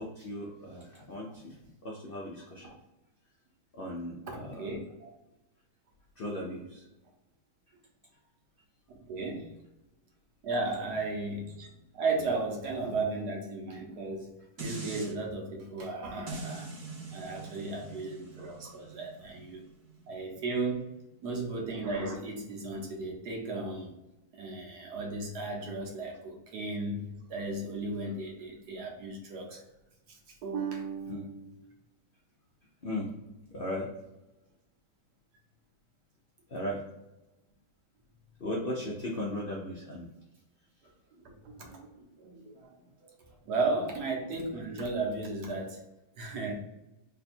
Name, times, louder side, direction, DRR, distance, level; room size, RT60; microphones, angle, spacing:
voice 1, 0.0-1.5 1.8-2.7 3.7-4.7 6.2-6.8 31.1-31.3 32.8-33.1 33.5-33.9 36.5-36.8 38.4-40.1, left 1 dB, 75° left, -2 dB, 0.5 m, -37 dB
voice 2, 4.3-5.1 9.1-9.5 10.4-11.7 11.9-14.3 14.6-16.7 17.1-19.6 20.1-20.9 21.2-23.9 24.3-29.6 30.4-31.6 41.2-41.8 42.2-42.7 43.5-45.8 46.2-46.6, right 3 dB, 70° right, 0 dB, 1.4 m, -35 dB
sound 1, 14.6-15.1 16.3-21.4 21.9-22.0, right 3 dB, 45° right, 0.6 m, -44 dB
3.3 x 2.3 x 4.2 m, 0.97 s
omnidirectional pair, 1.8 m